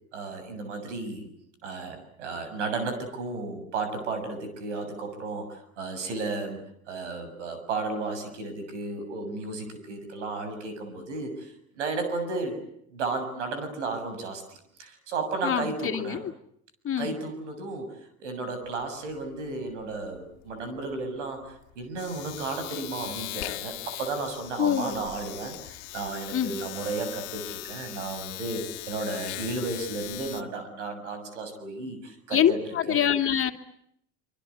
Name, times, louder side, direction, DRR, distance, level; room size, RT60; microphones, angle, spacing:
voice 1, 0.1-1.3 1.6-6.6 6.9-12.6 12.9-16.2 17.0-17.9 18.2-32.6 32.9-33.0, right 3 dB, 85° right, 9 dB, 6.8 m, -33 dB
voice 2, 15.4-16.2 16.8-17.1 24.6-25.0 26.3-26.5 32.3-33.5, left 9 dB, 40° left, 7 dB, 2.8 m, -25 dB
Domestic sounds home sounds, 18.6-18.9 19.1-30.4, left 18 dB, 75° left, 2.1 m, -39 dB
26.0 x 26.0 x 8.1 m, 0.73 s
hypercardioid pair, 75°, 35 cm